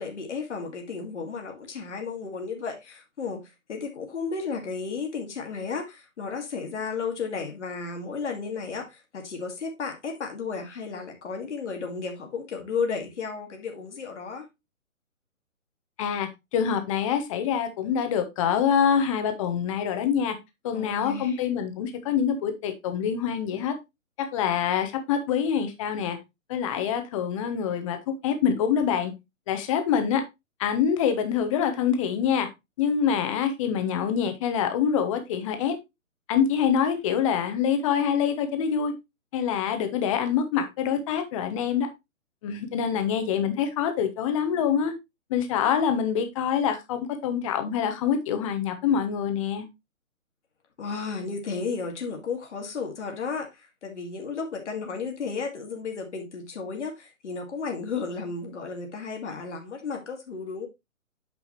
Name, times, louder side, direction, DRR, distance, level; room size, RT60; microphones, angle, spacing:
voice 1, 0.0-3.4 3.7-14.5 20.7-21.4 50.8-60.7, left 5 dB, 60° left, 2.0 m, -33 dB
voice 2, 16.0-20.4 20.6-23.7 24.2-26.2 26.5-29.1 29.5-30.2 30.6-32.5 32.8-35.8 36.3-38.9 39.3-41.9 42.4-44.9 45.3-49.6, left 8 dB, 25° left, 1.1 m, -25 dB
8.3 x 5.4 x 3.1 m
figure-of-eight pair, 135°, 40 cm